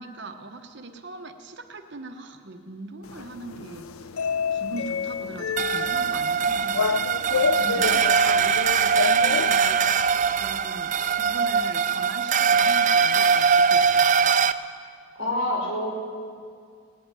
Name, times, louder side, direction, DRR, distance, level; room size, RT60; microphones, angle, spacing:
voice 1, 0.0-3.9 4.5-6.9 7.3-9.9 10.3-14.4, right 2 dB, 55° right, 7 dB, 0.9 m, -40 dB
sound 1, 3.0-10.0, left 6 dB, 90° left, 0.6 m, -29 dB
sound 2, 5.6-14.5, right 6 dB, 35° right, 0.4 m, -21 dB
voice 2, 15.2-15.9, left 1 dB, 65° left, -2 dB, 4.8 m, -27 dB
18.5 x 8.5 x 9.1 m, 2.2 s
head